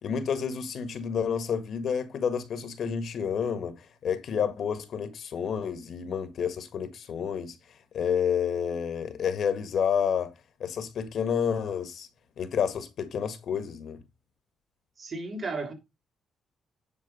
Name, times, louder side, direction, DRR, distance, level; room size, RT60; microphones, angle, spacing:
voice 1, 0.0-7.5 7.9-10.3 10.6-12.1 12.4-14.0, left 7 dB, 65° left, 1.6 m, -29 dB
voice 2, 15.0-15.7, right 3 dB, 40° right, 3.6 m, -34 dB
10.0 x 4.6 x 5.4 m
cardioid pair, 90°, 0 cm